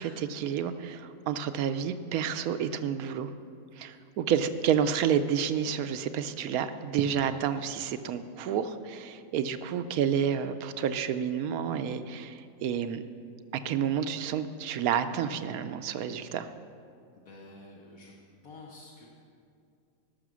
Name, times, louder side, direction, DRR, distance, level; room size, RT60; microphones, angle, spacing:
voice 1, 0.0-3.3 3.8-13.0 13.5-16.5, right 8 dB, 80° right, 10 dB, 1.1 m, -30 dB
voice 2, 3.8-4.1 17.1-18.2 18.4-19.1, left 2 dB, 75° left, -4 dB, 1.7 m, -50 dB
18.0 x 6.5 x 6.2 m, 2.4 s
omnidirectional pair, 1.5 m